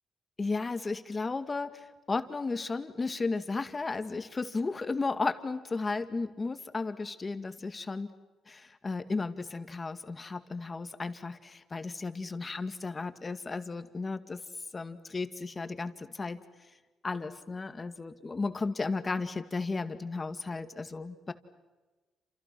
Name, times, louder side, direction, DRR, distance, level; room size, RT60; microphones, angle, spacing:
voice 1, 0.4-8.1 8.5-14.4 14.7-16.4 17.0-21.3, left 3 dB, 30° left, 10 dB, 2.1 m, -34 dB
29.5 x 28.0 x 6.2 m, 1.2 s
cardioid pair, 90°, 0 cm